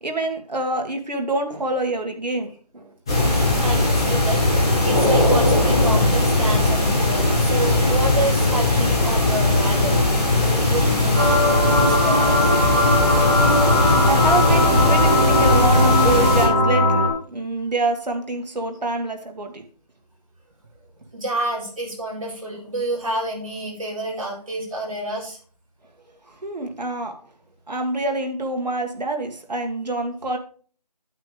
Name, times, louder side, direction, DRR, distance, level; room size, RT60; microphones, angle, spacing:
voice 1, 0.0-2.9 13.4-19.6 26.4-27.2 27.7-30.4, right 2 dB, 85° right, 4 dB, 1.9 m, -26 dB
sound 1, 3.1-16.5, left 2 dB, 5° left, 1.1 m, -19 dB
voice 2, 3.3-12.5 21.1-25.4, right 1 dB, 55° right, -3 dB, 4.3 m, -29 dB
floating synth pad, 11.1-17.1, left 1 dB, 15° right, 1.6 m, -19 dB
8.9 x 8.2 x 3.3 m, 0.43 s
figure-of-eight pair, 175°, 21 cm